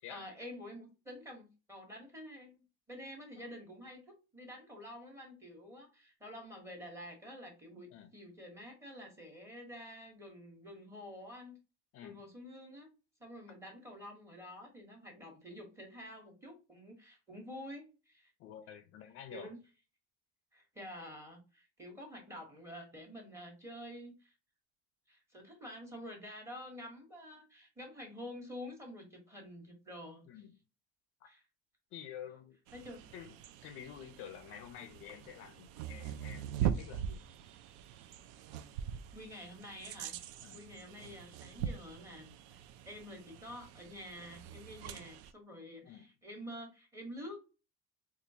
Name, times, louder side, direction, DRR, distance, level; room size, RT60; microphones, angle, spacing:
voice 1, 0.1-11.6 12.0-12.9 13.2-18.3 19.3-19.6 20.5-24.3 25.1-30.2 31.2-31.4 32.7-33.0 39.1-40.2 40.5-42.6 42.8-47.4, equal, 10° right, 1.0 m, -49 dB
voice 2, 11.9-12.2 18.4-19.5 30.3-30.5 31.9-32.6 33.1-33.3 33.6-37.2 40.4-40.6 45.8-46.1, left 9 dB, 50° left, 0.4 m, -49 dB
sound 1, 32.7-45.3, right 9 dB, 80° right, 0.5 m, -42 dB
4.3 x 2.3 x 2.7 m
cardioid pair, 165°, 29 cm